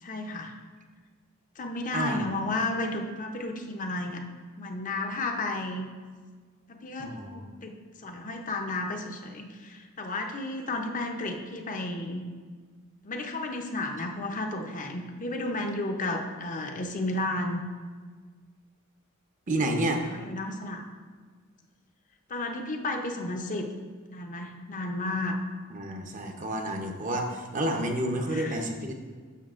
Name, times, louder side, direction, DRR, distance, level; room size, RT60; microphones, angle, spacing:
voice 1, 0.0-0.5 1.6-4.2 4.6-5.9 6.7-12.2 13.0-17.6 20.1-20.9 22.3-23.7 24.1-25.4 28.2-28.6, left 2 dB, 35° left, 3 dB, 0.6 m, -33 dB
voice 2, 7.0-7.5 19.5-20.1 25.7-28.9, right 1 dB, 35° right, 3 dB, 0.7 m, -30 dB
11.0 x 6.3 x 2.5 m, 1.5 s
head